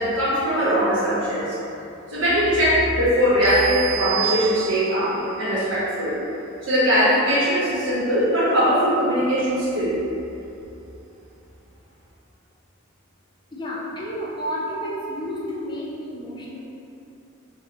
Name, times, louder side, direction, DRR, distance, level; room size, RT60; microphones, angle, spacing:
voice 1, 0.0-1.5 2.1-6.2 6.6-9.9, equal, 65° right, -10 dB, 1.1 m, -20 dB
sound 1, 3.4-5.1, right 11 dB, 30° right, 0.4 m, -29 dB
voice 2, 13.5-16.6, equal, 20° left, -5 dB, 0.5 m, -31 dB
3.2 x 2.2 x 3.9 m, 2.8 s
head